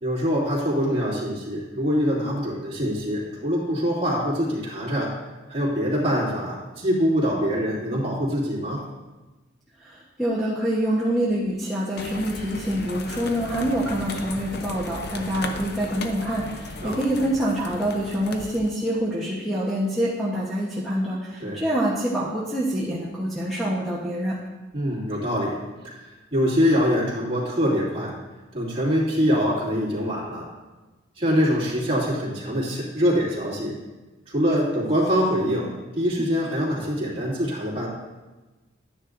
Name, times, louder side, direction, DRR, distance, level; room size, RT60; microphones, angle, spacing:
voice 1, 0.0-5.1 5.5-8.8 16.8-17.0 21.4-21.6 24.7-28.2 28.5-30.5 31.2-33.8 34.3-37.9, equal, 30° right, -6 dB, 2.6 m, -24 dB
voice 2, 9.8-24.4 36.2-36.3, right 1 dB, ahead, -9 dB, 1.0 m, -26 dB
sound 1, 12.0-18.7, left 2 dB, 55° left, 0.7 m, -35 dB
11.0 x 9.7 x 2.6 m, 1.2 s
head